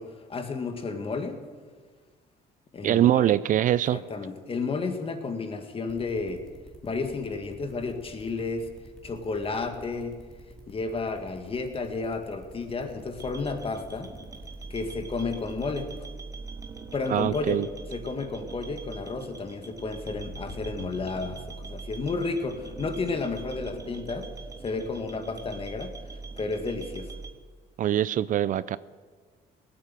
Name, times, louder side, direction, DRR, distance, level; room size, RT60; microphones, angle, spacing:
voice 1, 0.0-1.4 2.7-3.4 3.9-6.4 6.8-8.7 9.0-10.2 10.7-14.1 14.7-16.1 16.9-17.6 17.9-24.3 24.6-25.9 26.4-27.1, left 3 dB, 35° left, 7 dB, 1.9 m, -32 dB
voice 2, 2.8-4.0 17.1-17.7 27.8-28.8, right 12 dB, 50° right, 18 dB, 0.4 m, -23 dB
sound 1, 5.9-16.0, equal, 5° left, 2.2 m, -50 dB
sound 2, 13.1-27.3, right 4 dB, 20° right, 1.2 m, -42 dB
sound 3, 20.2-22.4, left 1 dB, 85° left, 2.6 m, -45 dB
18.0 x 8.5 x 7.6 m, 1.5 s
cardioid pair, 110°, 17 cm